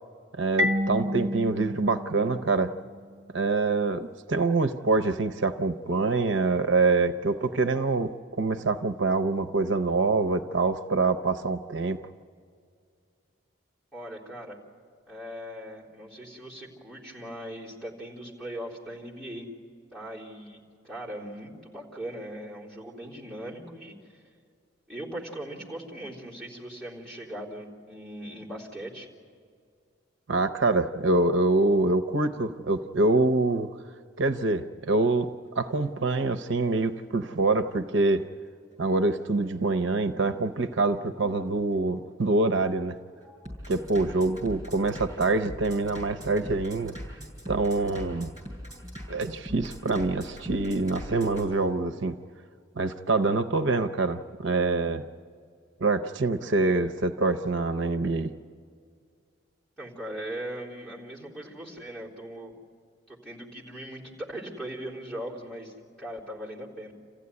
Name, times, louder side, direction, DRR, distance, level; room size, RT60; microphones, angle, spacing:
voice 1, 0.4-2.7 3.3-8.1 8.4-12.0 30.3-33.7 34.2-38.2 38.8-42.9 43.7-46.9 47.5-48.3 49.1-52.2 52.8-55.0 55.8-58.3, right 3 dB, 70° right, 9 dB, 0.7 m, -25 dB
Marimba xylophone, 0.6-3.2, left 1 dB, 40° right, 1.4 m, -30 dB
voice 2, 13.9-14.6 15.1-19.5 19.9-24.2 24.9-29.1 59.8-62.5 63.1-66.9, right 1 dB, 5° left, -6 dB, 3.6 m, -39 dB
Bass drum, 35.5-51.4, equal, 20° right, 6.6 m, -42 dB
27.5 x 15.5 x 9.6 m, 2.2 s
head